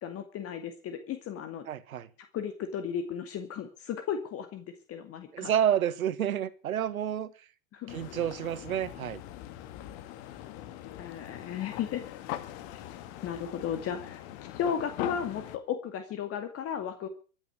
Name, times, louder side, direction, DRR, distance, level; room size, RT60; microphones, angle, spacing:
voice 1, 0.0-1.7 2.3-5.5 7.7-8.0 11.0-12.0 12.7-12.8 13.2-14.2 14.5-17.1, left 8 dB, 35° left, 2.4 m, -35 dB
voice 2, 1.7-2.1 5.3-7.3 7.9-9.2, right 10 dB, 85° right, 1.6 m, -29 dB
sound 1, 7.9-15.6, left 13 dB, 50° left, 2.3 m, -41 dB
15.5 x 9.8 x 8.2 m
hypercardioid pair, 110°, 41 cm